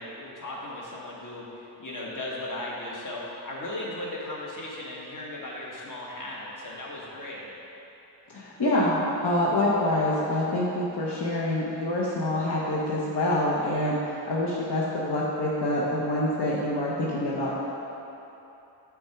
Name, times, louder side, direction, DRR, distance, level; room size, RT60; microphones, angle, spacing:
voice 1, 0.0-7.5, left 1 dB, 45° left, -4 dB, 1.3 m, -37 dB
voice 2, 8.3-9.0 9.2-17.6, left 1 dB, 70° left, -6 dB, 0.9 m, -26 dB
6.0 x 3.6 x 5.8 m, 3.0 s
cardioid pair, 55°, 42 cm